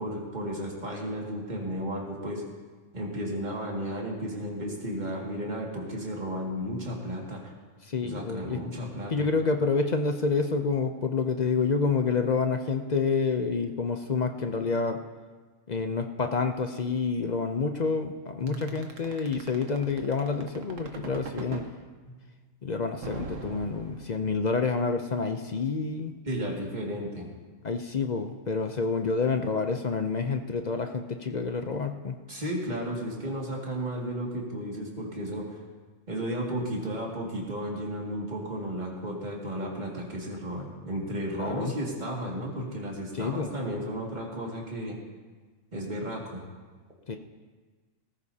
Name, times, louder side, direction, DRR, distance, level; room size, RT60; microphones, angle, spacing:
voice 1, 0.0-2.4 2.9-7.5 8.0-9.3 18.4-18.6 26.2-27.3 32.3-35.4 36.1-44.9 45.7-46.4, equal, 35° right, -2 dB, 2.3 m, -33 dB
voice 2, 7.8-8.6 9.1-15.0 15.7-21.7 22.6-26.1 27.6-32.2 41.4-41.7 43.1-43.5 47.1-47.2, left 4 dB, 45° left, 6 dB, 0.5 m, -28 dB
sound 1, 18.5-21.7 23.0-24.4, right 4 dB, 70° right, 1.5 m, -40 dB
18.0 x 14.5 x 2.8 m, 1.4 s
omnidirectional pair, 1.4 m